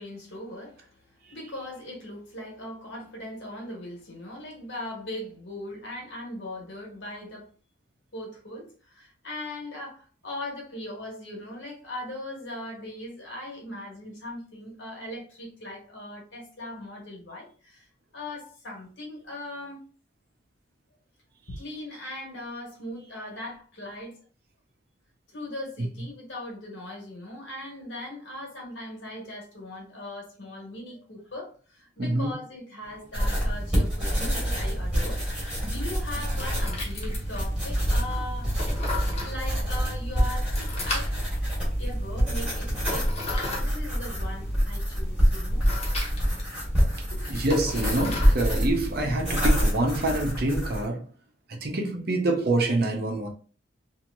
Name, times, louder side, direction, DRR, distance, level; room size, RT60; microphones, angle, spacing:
voice 1, 0.0-7.5 8.1-17.9 18.1-19.8 21.5-24.2 25.3-35.2 35.6-38.5 39.2-41.3 41.8-45.6 47.1-47.4, left 1 dB, 80° left, 1.4 m, -39 dB
voice 2, 32.0-32.3 39.1-39.3 47.3-51.1 51.6-53.3, right 2 dB, 55° right, 0.8 m, -26 dB
sound 1, 32.8-50.3, left 3 dB, 35° left, 0.9 m, -39 dB
sound 2, 33.1-50.8, equal, 5° right, 1.3 m, -26 dB
2.9 x 2.7 x 2.6 m
head